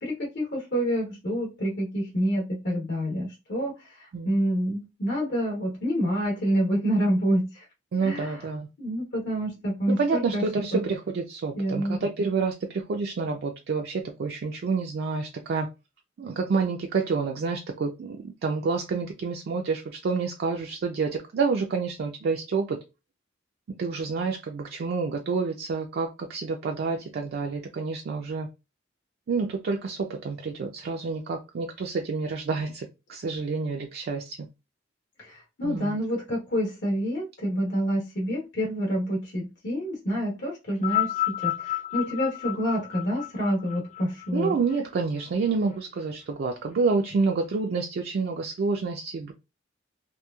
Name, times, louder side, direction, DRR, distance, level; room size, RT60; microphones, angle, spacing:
voice 1, 0.0-3.7 4.2-7.6 8.0-8.5 8.8-10.6 11.5-12.0 35.2-44.6, equal, 60° left, 1.0 m, -28 dB
voice 2, 7.9-8.7 9.9-15.7 16.2-22.8 23.8-28.5 29.3-34.4 35.6-36.0 44.3-49.3, right 4 dB, 55° right, 0.3 m, -28 dB
sound 1, 40.7-45.2 46.1-46.2, left 15 dB, 40° left, 0.3 m, -31 dB
3.0 x 2.3 x 2.2 m
head